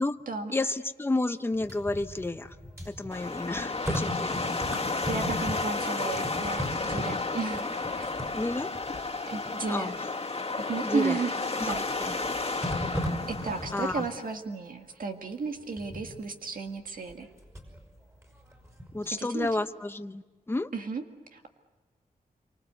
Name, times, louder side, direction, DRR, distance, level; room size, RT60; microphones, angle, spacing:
voice 1, 0.5-2.5 2.9-4.4 8.3-8.7 9.7-9.9 10.8-11.2 11.6-12.1 13.7-14.1 18.9-20.2 20.5-20.7, left 2 dB, 15° left, 9 dB, 0.8 m, -31 dB
sound 1, 1.5-5.9 6.1-8.9 9.5-9.6 11.2-11.7 12.6-14.1 15.8-16.2 17.1-17.8 18.2-19.2 19.5-19.6, equal, 20° right, 5.4 m, -37 dB
sound 2, 3.1-14.3, left 3 dB, 40° left, 2.1 m, -32 dB
voice 2, 5.0-8.1 9.3-9.9 10.6-11.4 11.7-12.3 13.3-17.3 19.1-19.5 20.7-21.0 21.3-21.5, right 4 dB, 65° right, 4 dB, 1.9 m, -34 dB
27.5 x 25.0 x 8.0 m, 1.3 s
wide cardioid pair, 135°, 15 cm